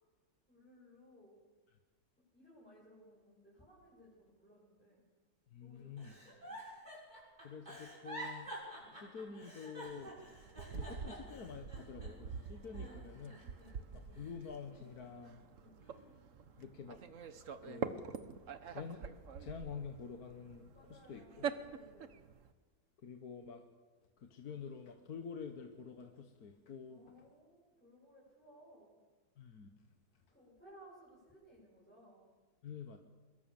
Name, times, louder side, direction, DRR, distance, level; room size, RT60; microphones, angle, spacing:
voice 1, 0.5-1.4 2.3-5.0 5.6-6.6 8.8-9.0 12.6-13.9 15.6-15.8 20.7-22.3 26.9-29.0 30.3-32.3, equal, 5° left, -7 dB, 7.5 m, -61 dB
voice 2, 5.5-6.2 7.4-8.6 8.9-10.2 10.7-13.4 13.9-15.4 16.6-17.0 17.6-18.0 18.7-19.0 19.4-21.5 23.0-23.6 24.2-27.1 29.4-29.7 32.6-33.0, left 6 dB, 55° left, 5 dB, 1.8 m, -48 dB
Giggle, 6.0-12.3 12.7-13.7 14.2-15.3 15.8-16.1, right 1 dB, 25° right, 7.5 m, -49 dB
sound 1, 9.9-22.5, right 6 dB, 50° right, 1.4 m, -46 dB
25.5 x 22.5 x 7.2 m, 1.4 s
omnidirectional pair, 2.0 m